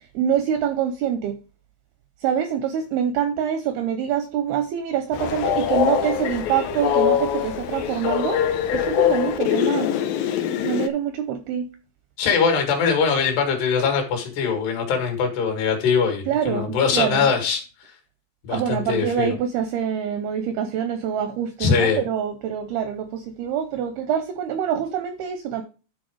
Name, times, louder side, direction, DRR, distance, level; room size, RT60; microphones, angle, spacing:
voice 1, 0.2-1.3 2.2-8.4 8.7-9.9 10.6-11.7 16.3-17.3 18.5-25.6, right 9 dB, 85° right, 2.2 m, -25 dB
Train, 5.1-10.9, left 9 dB, 85° left, 2.0 m, -23 dB
voice 2, 12.2-17.6 18.4-19.4 21.6-22.1, left 5 dB, 70° left, 3.7 m, -22 dB
11.0 x 4.2 x 4.7 m
omnidirectional pair, 5.1 m